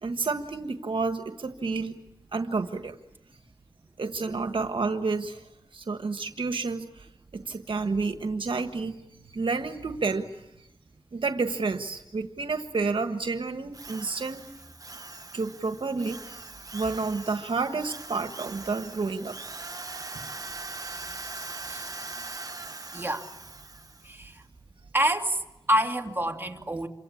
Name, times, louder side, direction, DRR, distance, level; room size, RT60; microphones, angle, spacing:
voice 1, 0.0-1.9 2.3-2.9 4.0-5.4 5.7-7.1 7.3-9.0 9.2-10.4 11.1-14.4 15.3-16.4 16.7-19.4 21.2-21.7, right 4 dB, 75° right, 7 dB, 1.5 m, -30 dB
Drill, 13.7-24.2, right 3 dB, 40° right, 1.3 m, -41 dB
voice 2, 22.9-23.3 24.0-24.4 24.9-26.9, right 1 dB, 25° right, 3 dB, 2.8 m, -28 dB
28.0 x 24.5 x 8.7 m, 0.91 s
wide cardioid pair, 75°, 9 cm